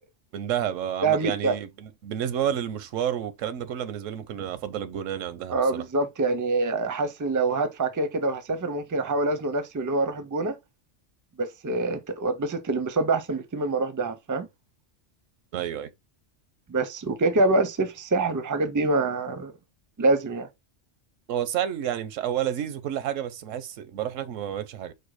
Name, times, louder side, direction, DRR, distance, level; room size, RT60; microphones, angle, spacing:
voice 1, 0.3-5.8 15.5-15.9 21.3-24.9, right 10 dB, 85° right, 1.0 m, -30 dB
voice 2, 1.0-1.5 5.5-10.5 11.4-14.5 16.7-19.5 20.0-20.5, right 3 dB, 30° right, 0.4 m, -25 dB
4.6 x 2.2 x 4.7 m
omnidirectional pair, 1.3 m